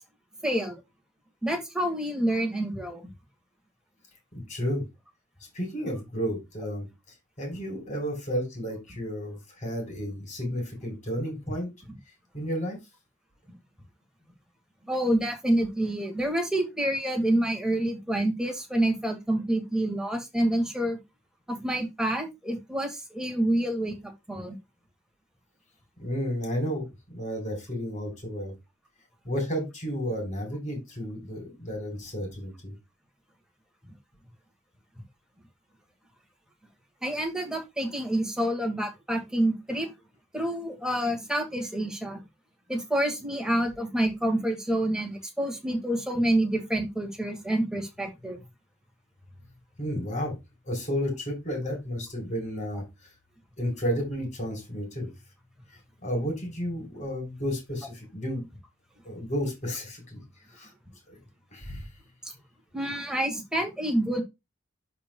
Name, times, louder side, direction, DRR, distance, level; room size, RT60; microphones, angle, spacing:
voice 1, 0.4-0.8 1.4-3.0 14.9-21.0 21.5-24.6 37.0-39.9 40.3-42.2 42.7-48.4 62.7-64.2, right 1 dB, 5° right, 3 dB, 1.8 m, -28 dB
voice 2, 4.3-4.9 5.5-6.9 7.4-11.7 12.3-12.8 26.0-28.6 29.2-32.7 49.8-50.4 50.6-53.1 53.6-55.1 56.0-58.4 59.0-60.2 60.5-60.7 61.1-61.2 61.5-61.9, equal, 35° left, 2 dB, 4.1 m, -32 dB
12.0 x 4.6 x 2.3 m, 0.22 s
head